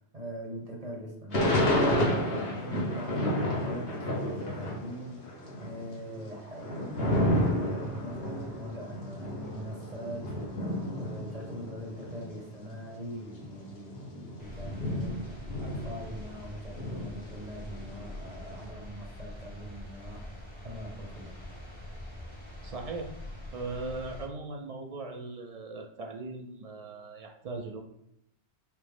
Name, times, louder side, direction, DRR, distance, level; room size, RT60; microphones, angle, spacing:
voice 1, 0.1-20.3 20.6-21.5, equal, 40° right, -1 dB, 0.9 m, -42 dB
Thunder / Rain, 1.3-4.9 5.2-12.3 12.9-13.0 13.2-16.4 16.7-18.5, left 1 dB, 65° left, 1.2 m, -31 dB
sound 1, 14.4-24.3, left 1 dB, 30° left, 1.1 m, -44 dB
voice 2, 22.6-23.1 23.5-27.8, right 3 dB, 60° right, 3 dB, 0.4 m, -39 dB
5.8 x 2.1 x 3.4 m, 0.76 s
omnidirectional pair, 1.1 m